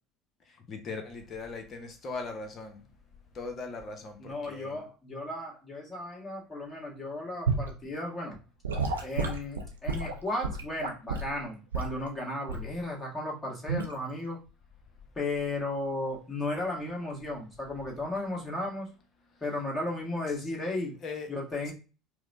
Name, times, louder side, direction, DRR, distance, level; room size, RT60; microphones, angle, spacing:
voice 1, 0.7-2.8 3.3-4.8 21.0-21.3 21.7-21.8, left 3 dB, 40° left, 5 dB, 0.8 m, -39 dB
voice 2, 4.2-8.4 9.0-14.4 15.1-18.9 19.4-20.9 21.3-21.7, left 2 dB, 20° left, -2 dB, 1.5 m, -35 dB
Gurgling / Sink (filling or washing) / Liquid, 7.5-7.7 8.6-11.3 11.7-12.0 12.5-12.8 13.7-13.9, right 4 dB, 80° right, 0.5 m, -31 dB
4.6 x 2.1 x 2.6 m, 0.34 s
figure-of-eight pair, 65°, 0 cm